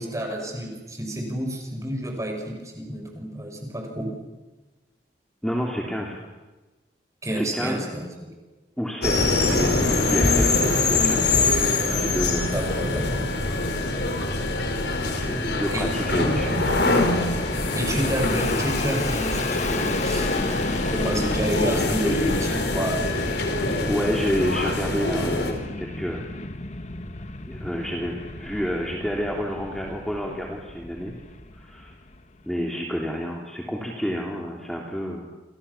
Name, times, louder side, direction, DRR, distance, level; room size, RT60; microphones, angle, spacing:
voice 1, 0.0-4.1 7.2-8.1 12.5-13.3 15.7-15.8 17.7-20.4 20.9-23.0, right 1 dB, 20° right, 2 dB, 6.6 m, -29 dB
voice 2, 5.4-6.2 7.3-7.8 8.8-11.2 11.9-12.5 15.0-16.7 23.9-26.3 27.5-31.1 31.6-32.0 32.4-35.3, equal, 5° left, -1 dB, 3.0 m, -29 dB
sound 1, 9.0-25.5, left 2 dB, 70° left, 4.8 m, -24 dB
Fixed-wing aircraft airplane, 16.1-32.5, left 2 dB, 40° left, 1.5 m, -33 dB
29.5 x 26.0 x 7.2 m, 1.2 s
head